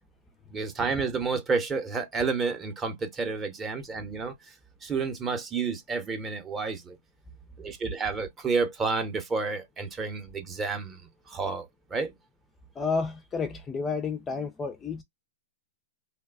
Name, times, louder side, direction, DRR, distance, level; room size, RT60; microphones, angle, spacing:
voice 1, 0.5-4.5 4.8-7.0 7.6-11.0 11.3-12.1, right 4 dB, 20° right, 0.7 m, -30 dB
voice 2, 12.8-15.0, left 4 dB, 20° left, 0.4 m, -31 dB
3.2 x 2.1 x 2.2 m
hypercardioid pair, 130°, 0 cm